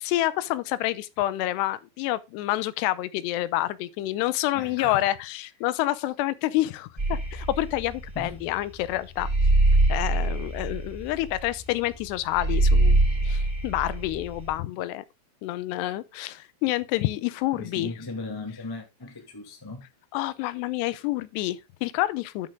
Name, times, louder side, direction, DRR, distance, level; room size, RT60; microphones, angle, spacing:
voice 1, 0.0-9.3 9.9-15.0 15.4-17.9 20.1-22.5, left 16 dB, 90° left, 2.8 m, -28 dB
voice 2, 4.5-5.0 8.1-8.5 17.6-19.8, left 3 dB, 35° left, 0.3 m, -37 dB
sound 1, 7.0-14.5, right 2 dB, 10° right, 1.9 m, -23 dB
11.0 x 6.2 x 3.7 m
omnidirectional pair, 4.8 m